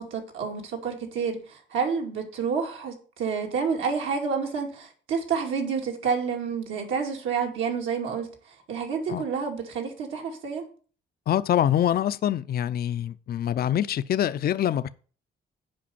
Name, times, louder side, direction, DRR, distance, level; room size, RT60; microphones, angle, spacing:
voice 1, 0.0-8.3 8.7-10.7, right 6 dB, 80° right, 2.3 m, -29 dB
voice 2, 11.3-14.9, left 10 dB, 50° left, 0.5 m, -25 dB
7.7 x 5.2 x 6.9 m
cardioid pair, 90°, 20 cm